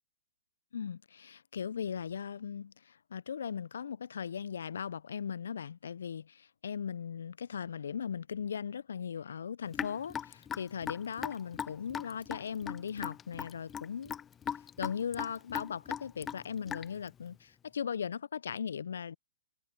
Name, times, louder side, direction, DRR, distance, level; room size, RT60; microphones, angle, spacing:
voice 1, 0.7-14.2 14.8-19.2, left 7 dB, 65° left, 0.7 m, -38 dB
Raindrop / Drip, 9.7-17.1, left 8 dB, 20° left, 0.5 m, -39 dB
figure-of-eight pair, 115°, 0 cm